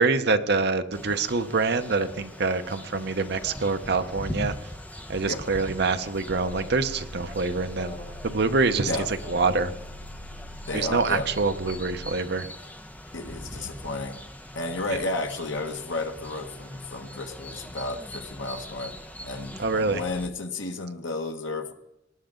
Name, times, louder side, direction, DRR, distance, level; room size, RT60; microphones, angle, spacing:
voice 1, 0.0-4.6 5.1-7.9 8.2-9.7 10.7-12.5 19.6-20.0, right 3 dB, 60° right, 9 dB, 0.9 m, -25 dB
sound 1, 0.9-20.3, left 1 dB, 10° left, 0.8 m, -41 dB
Alarm, 6.3-12.1, left 1 dB, 40° left, 2.0 m, -41 dB
voice 2, 10.7-11.3 13.1-14.2 14.5-18.9 19.2-21.7, left 2 dB, 80° left, 4 dB, 1.4 m, -32 dB
19.0 x 10.5 x 3.8 m, 0.84 s
head